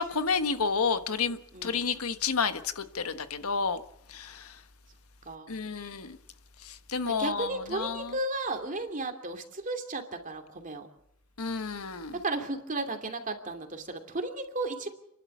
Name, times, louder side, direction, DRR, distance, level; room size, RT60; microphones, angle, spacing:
voice 1, 0.0-3.8 4.1-4.5 5.5-6.2 6.6-8.1 11.4-12.1, left 5 dB, 75° left, 1.3 m, -30 dB
voice 2, 1.5-1.9 5.3-5.5 7.0-10.9 12.2-14.9, right 2 dB, 35° right, 2.7 m, -34 dB
29.5 x 11.5 x 8.5 m
head